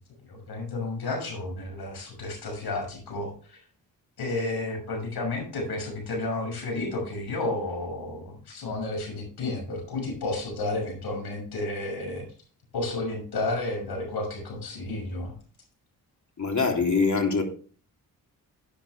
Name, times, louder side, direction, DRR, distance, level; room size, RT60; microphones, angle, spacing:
voice 1, 0.3-3.6 4.2-12.2 12.7-15.3, left 2 dB, 80° left, 2 dB, 6.3 m, -32 dB
voice 2, 16.4-17.4, left 4 dB, 50° left, 3 dB, 3.2 m, -23 dB
11.0 x 9.9 x 3.4 m, 0.40 s
cardioid pair, 65°, 38 cm